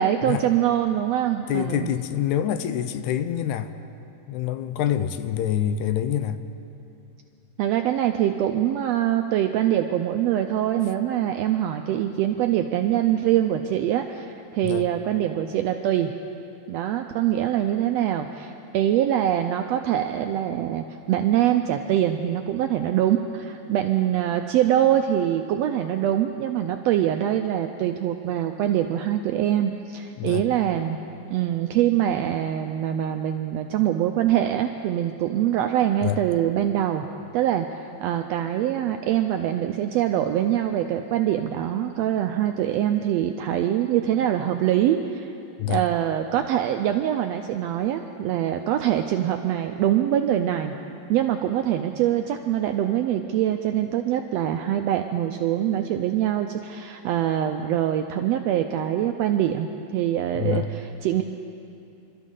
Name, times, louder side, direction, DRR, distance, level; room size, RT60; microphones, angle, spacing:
voice 1, 0.0-1.9 7.6-16.1 16.7-31.0 31.3-37.0 37.3-45.3 45.7-50.7 51.1-61.2, right 11 dB, 85° right, 6 dB, 1.5 m, -24 dB
voice 2, 1.5-3.7 4.3-6.4 14.6-14.9 30.2-30.4 36.0-36.2 45.6-45.8 60.3-60.7, left 10 dB, 85° left, 11 dB, 2.0 m, -26 dB
28.0 x 13.0 x 3.8 m, 2.7 s
omnidirectional pair, 3.5 m